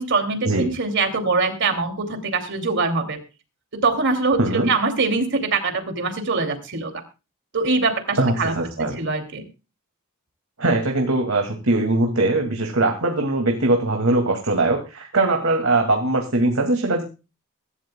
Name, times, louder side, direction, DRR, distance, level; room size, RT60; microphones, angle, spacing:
voice 1, 0.0-3.2 3.8-6.9 7.5-8.5 9.0-9.4, right 3 dB, 60° right, 6 dB, 2.7 m, -23 dB
voice 2, 4.4-4.7 8.2-9.0 10.6-17.0, right 2 dB, 75° right, 2 dB, 2.3 m, -21 dB
23.5 x 12.5 x 2.3 m, 0.30 s
head